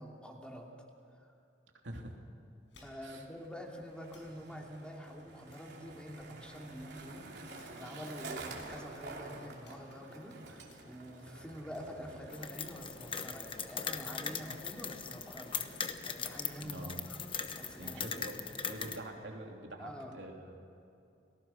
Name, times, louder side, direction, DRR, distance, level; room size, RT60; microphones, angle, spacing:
voice 1, 0.0-1.3 2.8-7.2 7.7-17.2 17.5-18.2 19.8-20.1, equal, 5° left, 0 dB, 2.8 m, -47 dB
sound 1, 2.6-3.0 3.3-3.5 4.0-4.2 4.7-4.8 5.4-6.1 6.4-7.1 7.4-7.9 8.5-8.8 9.3-9.4 9.6-10.1 10.6-10.8 11.5-11.8, left 4 dB, 80° left, 5.7 m, -63 dB
Skateboard, 3.4-16.1, right 2 dB, 65° right, 3.1 m, -50 dB
sound 2, 12.3-19.0, left 6 dB, 30° left, 1.1 m, -40 dB
voice 2, 16.6-17.0 17.8-18.4 18.7-20.6, right 1 dB, 85° right, 1 dB, 3.1 m, -45 dB
30.0 x 19.5 x 5.8 m, 2.6 s
head